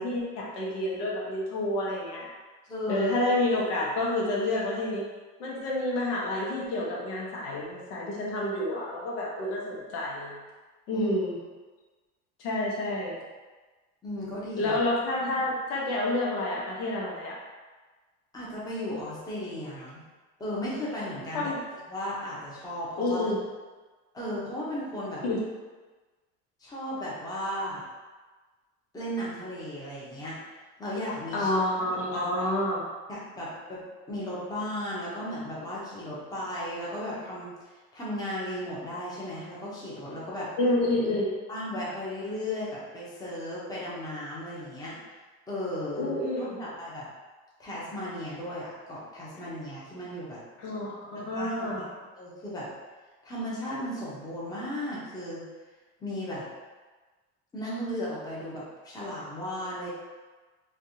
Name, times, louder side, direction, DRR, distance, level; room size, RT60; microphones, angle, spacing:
voice 1, 0.0-2.3 2.9-5.0 5.4-10.4 10.9-11.3 12.4-13.2 14.6-17.4 21.3-21.6 23.0-23.4 25.2-25.4 31.3-32.8 40.6-41.3 46.0-46.6 50.6-51.9, left 1 dB, 80° left, -4 dB, 1.0 m, -29 dB
voice 2, 2.7-3.1 10.9-11.1 14.0-14.8 18.3-20.0 20.4-21.6 21.9-23.3 24.1-25.2 26.6-27.8 28.9-30.4 30.8-31.5 31.9-32.5 33.1-33.8 34.1-40.5 41.5-44.9 45.5-46.2 46.6-47.1 47.6-50.4 51.1-51.7 52.2-52.7 53.2-55.4 56.0-56.4 57.5-59.9, left 1 dB, 10° left, -7 dB, 0.8 m, -35 dB
3.3 x 2.5 x 2.7 m, 1.3 s
cardioid pair, 135°, 33 cm